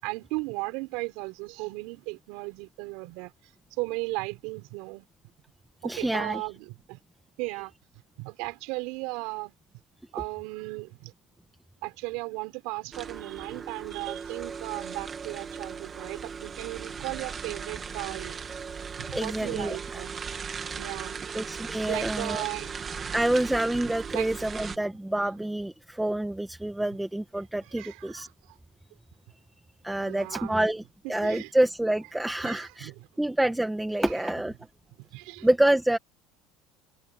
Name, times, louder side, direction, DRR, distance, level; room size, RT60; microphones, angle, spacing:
voice 1, 0.0-3.3 3.8-5.1 5.8-7.0 7.4-7.7 8.2-9.5 10.1-11.1 11.8-18.4 19.0-20.1 20.8-21.3 21.9-22.8 23.0-23.1 24.1-24.3 27.7-28.5 30.0-30.6 31.0-31.5 32.4-32.9 34.0-34.1 35.1-35.5, right 26 dB, 65° right, 6.5 m, -36 dB
voice 2, 5.8-6.4 19.1-20.0 21.3-22.4 23.1-28.3 29.8-30.8 31.1-32.9 33.2-34.5 35.4-36.0, right 1 dB, 5° right, 1.3 m, -27 dB
sound 1, 12.9-24.8, right 6 dB, 20° right, 2.0 m, -37 dB
cardioid pair, 155°, 0 cm